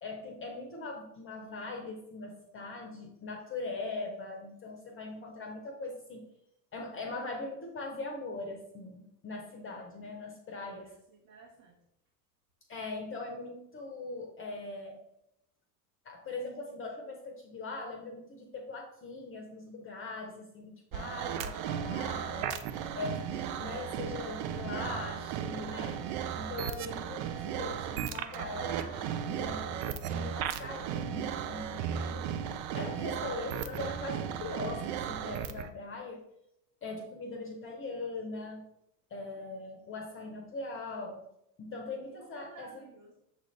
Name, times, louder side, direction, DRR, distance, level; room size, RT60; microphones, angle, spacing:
voice 1, 0.0-6.2 6.7-10.9 12.7-15.0 16.0-22.5 22.9-26.0 26.3-32.3 32.7-36.2 36.8-38.6 39.1-41.2 41.6-42.8, left 3 dB, 25° left, 2 dB, 0.8 m, -41 dB
voice 2, 10.8-11.8 42.1-43.2, right 4 dB, 65° right, -3 dB, 1.1 m, -55 dB
sound 1, 20.9-35.7, right 9 dB, 50° right, 0.5 m, -35 dB
6.5 x 2.5 x 3.2 m, 0.80 s
hypercardioid pair, 75°, 49 cm